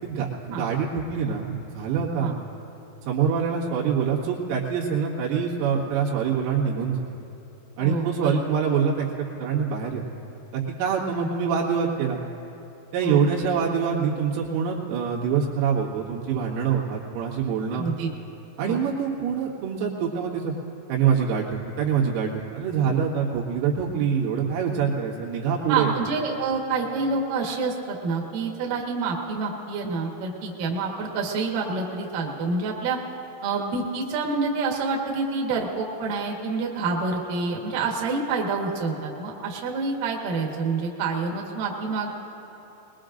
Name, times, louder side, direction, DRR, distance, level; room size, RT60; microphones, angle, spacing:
voice 1, 0.0-2.4 3.1-7.1 7.8-9.1 9.4-10.0 10.5-12.2 12.9-17.9 18.6-20.5 20.9-25.9, right 7 dB, 85° right, -4 dB, 4.4 m, -25 dB
voice 2, 7.8-8.4 11.1-11.3 13.0-13.3 17.7-18.1 18.6-18.8 25.7-33.0 33.4-42.1, right 4 dB, 60° right, -1 dB, 2.5 m, -27 dB
23.0 x 21.0 x 2.6 m, 3.0 s
omnidirectional pair, 5.7 m